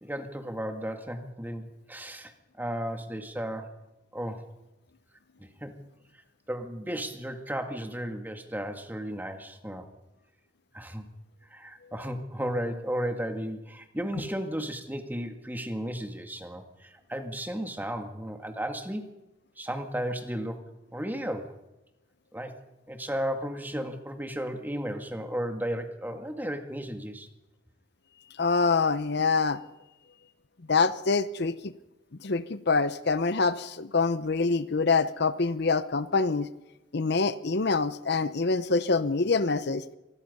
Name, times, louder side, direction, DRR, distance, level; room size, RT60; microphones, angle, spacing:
voice 1, 0.0-2.3 2.6-3.7 4.1-4.5 5.4-5.8 6.5-9.9 10.7-11.1 11.5-19.1 19.6-20.6 20.9-21.5 22.3-22.5 22.9-27.3, equal, 10° right, 5 dB, 1.9 m, -34 dB
voice 2, 28.4-29.6 30.7-31.7 32.2-36.5 36.9-39.8, left 4 dB, 55° left, 13 dB, 0.8 m, -25 dB
25.5 x 20.0 x 5.4 m, 0.97 s
head